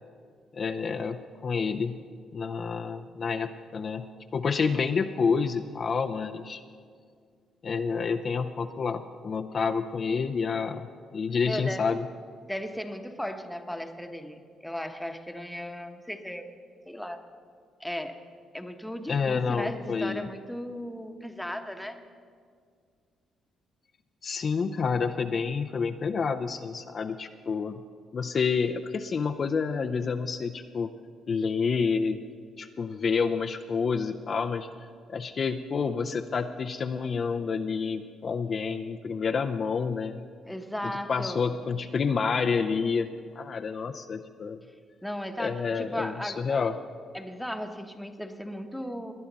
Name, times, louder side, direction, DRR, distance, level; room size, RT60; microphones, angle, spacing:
voice 1, 0.5-2.0 2.3-4.1 4.3-6.6 7.6-12.0 19.1-20.3 24.2-27.8 28.1-30.9 31.3-32.2 32.6-34.7 35.1-40.2 40.8-43.1 43.4-44.6 45.4-46.7, left 5 dB, 45° left, 6 dB, 0.5 m, -29 dB
voice 2, 11.4-11.9 12.5-16.4 16.9-17.2 17.8-18.2 18.5-22.0 40.4-41.5 45.0-46.6 47.1-49.1, equal, 5° left, 6 dB, 1.0 m, -36 dB
19.5 x 10.5 x 4.0 m, 2.1 s
cardioid pair, 90°, 0 cm